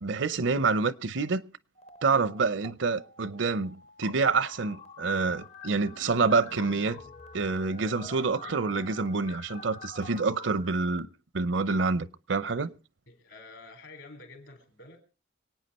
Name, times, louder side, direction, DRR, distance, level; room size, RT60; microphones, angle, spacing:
voice 1, 0.0-1.4 2.0-7.0 7.3-11.1 11.3-12.7, right 4 dB, 65° right, 0.6 m, -27 dB
sound 1, 1.8-2.7 3.0-11.0, left 4 dB, 35° left, 0.7 m, -47 dB
voice 2, 13.1-15.0, left 3 dB, 70° left, 4.0 m, -49 dB
26.0 x 9.1 x 4.2 m
head